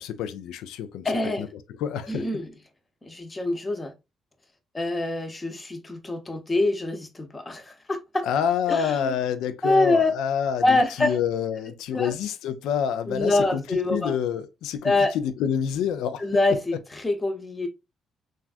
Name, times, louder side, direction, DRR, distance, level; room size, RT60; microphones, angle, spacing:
voice 1, 0.0-1.1 1.4-1.5 1.8-2.2 8.2-13.6 13.9-16.2, left 8 dB, 90° left, 0.3 m, -27 dB
voice 2, 1.0-1.5 2.1-2.5 3.0-3.9 4.7-8.3 8.7-9.1 9.6-10.1 10.6-11.2 11.9-12.1 13.1-14.1 14.8-15.1 16.2-17.7, left 2 dB, 20° left, 0.7 m, -25 dB
3.3 x 2.3 x 2.4 m
cardioid pair, 90°, 0 cm